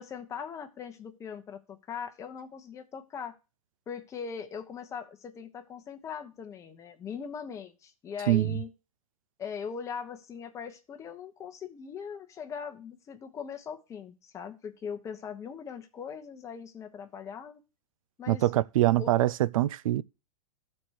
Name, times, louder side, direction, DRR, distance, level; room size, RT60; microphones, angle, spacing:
voice 1, 0.0-3.3 3.9-8.7 9.4-17.6 18.2-18.5 19.0-19.1, left 7 dB, 15° left, 1.0 m, -40 dB
voice 2, 8.3-8.6 18.3-20.0, right 15 dB, 70° right, 0.5 m, -24 dB
13.0 x 4.5 x 6.3 m
supercardioid pair, 155°, 18 cm